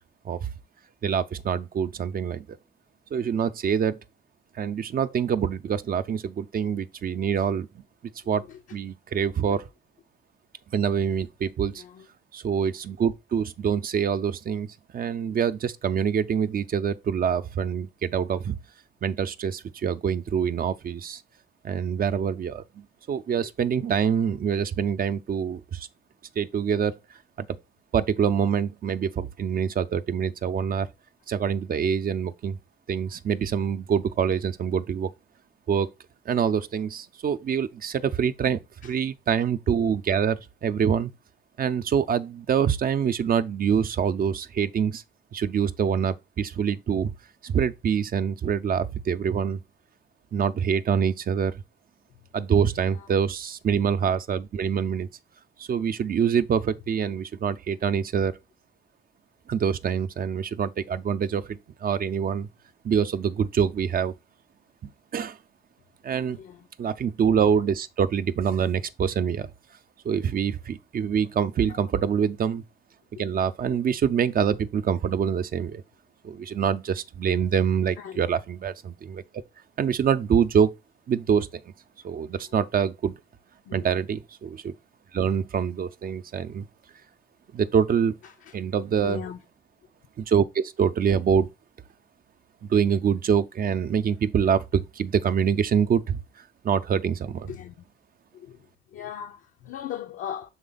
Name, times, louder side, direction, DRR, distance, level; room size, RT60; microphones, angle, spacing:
voice 1, 1.0-2.6 3.1-4.0 4.6-7.7 8.3-8.4 8.7-9.6 10.7-11.8 12.3-14.7 14.9-18.6 19.0-21.2 21.6-25.9 26.4-26.9 27.4-27.5 27.9-30.9 31.3-32.6 32.9-35.1 35.7-35.9 36.3-41.1 41.6-45.0 45.3-47.1 47.4-49.6 50.3-51.5 52.3-55.1 55.6-58.4 59.5-62.5 62.8-64.1 65.1-65.4 66.0-66.4 66.8-69.5 70.0-72.6 73.2-75.8 76.2-79.2 79.8-80.7 81.1-81.6 82.0-83.1 83.7-84.7 85.1-86.7 87.5-88.1 88.5-89.2 90.2-91.5 92.6-96.2 96.6-97.5, right 7 dB, 45° right, 0.6 m, -25 dB
voice 2, 8.3-8.8 9.2-9.6 11.7-12.1 23.4-23.5 37.5-37.6 38.8-38.9 52.9-53.2 66.3-66.7 71.7-71.9 73.6-73.8 78.0-78.2 83.6-83.9 88.2-88.6 89.0-89.4 97.4-97.8 98.3-100.5, left 9 dB, 80° left, 0.7 m, -40 dB
7.2 x 3.4 x 3.9 m
cardioid pair, 90°, 20 cm